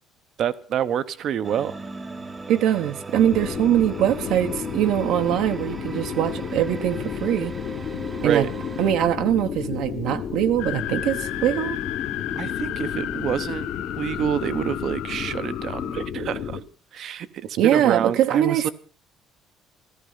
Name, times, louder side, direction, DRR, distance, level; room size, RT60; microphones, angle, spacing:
voice 1, 0.4-1.8 8.1-8.5 12.4-16.6 16.9-18.7, right 9 dB, 45° right, 0.9 m, -27 dB
sound 1, 1.4-8.9, right 3 dB, 15° right, 1.0 m, -38 dB
voice 2, 2.5-7.5 8.2-8.4 8.8-11.8 12.4-12.5 17.6-18.7, right 11 dB, 65° right, 1.1 m, -22 dB
sound 2, 3.2-16.6, left 8 dB, 45° left, 1.4 m, -32 dB
sound 3, 10.6-16.1, left 13 dB, 65° left, 0.9 m, -34 dB
15.0 x 14.0 x 5.6 m
cardioid pair, 170°, 0 cm